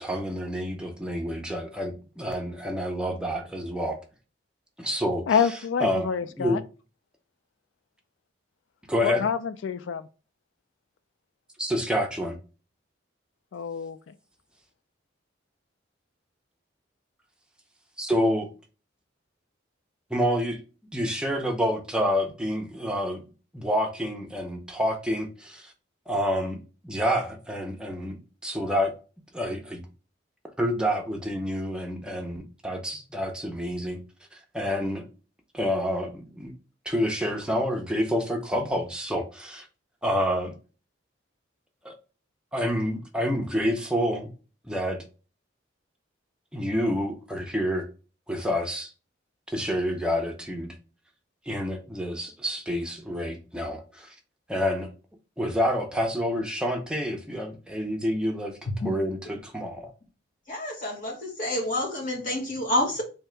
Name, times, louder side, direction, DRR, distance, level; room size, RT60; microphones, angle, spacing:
voice 1, 0.0-4.0 4.8-5.2 5.8-6.1 6.4-6.6 8.9-9.2 11.6-12.4 18.0-18.5 20.1-20.6 20.9-23.2 23.5-25.7 26.1-26.6 26.8-28.2 28.4-28.9 29.3-29.9 30.6-34.0 34.3-35.1 35.5-36.5 36.9-39.7 40.0-40.5 41.8-41.9 42.5-44.3 44.6-45.0 46.5-47.9 48.3-48.9 49.5-50.8 51.5-54.1 54.5-54.9 55.4-59.9, equal, 5° right, 0.6 m, -28 dB
voice 2, 5.3-6.6 9.0-10.1 13.5-14.1, left 7 dB, 80° left, 0.4 m, -27 dB
voice 3, 60.5-63.0, left 1 dB, 45° left, 1.4 m, -28 dB
3.5 x 2.8 x 3.3 m
head